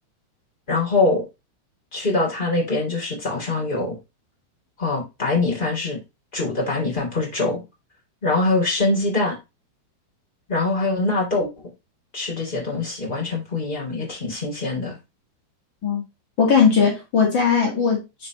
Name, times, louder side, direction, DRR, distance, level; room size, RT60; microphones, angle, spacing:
voice 1, 0.7-1.2 1.9-4.0 4.8-6.0 6.3-7.6 8.2-9.3 10.5-11.5 12.1-15.0, left 3 dB, 15° left, -1 dB, 2.5 m, -23 dB
voice 2, 16.4-18.3, left 6 dB, 90° left, -1 dB, 1.0 m, -19 dB
9.2 x 5.3 x 3.0 m, 0.24 s
omnidirectional pair, 5.5 m